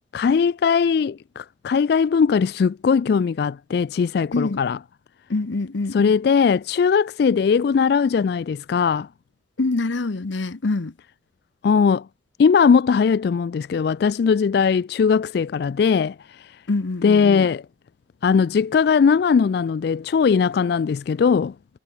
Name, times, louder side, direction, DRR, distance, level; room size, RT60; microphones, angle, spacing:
voice 1, 0.1-4.8 5.9-9.1 11.6-12.1 12.4-16.6 17.0-17.7 18.2-21.5, left 6 dB, 55° left, 0.3 m, -19 dB
voice 2, 5.3-6.1 9.6-10.9 16.7-17.5, left 3 dB, 75° left, 0.8 m, -25 dB
head